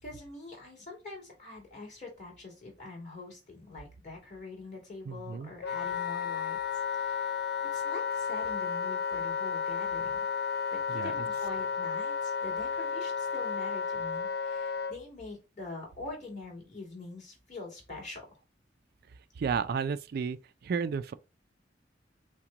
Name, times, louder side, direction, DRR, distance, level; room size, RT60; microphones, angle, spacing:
voice 1, 0.0-6.6 6.9-7.3 7.7-10.2 10.5-18.3, left 2 dB, 45° left, 2.5 m, -44 dB
voice 2, 5.1-5.5 10.9-11.1 19.4-20.4 20.6-21.1, right 6 dB, 60° right, 0.3 m, -32 dB
Wind instrument woodwind instrument, 5.6-15.0, left 6 dB, 60° left, 0.6 m, -32 dB
5.8 x 2.2 x 3.8 m
head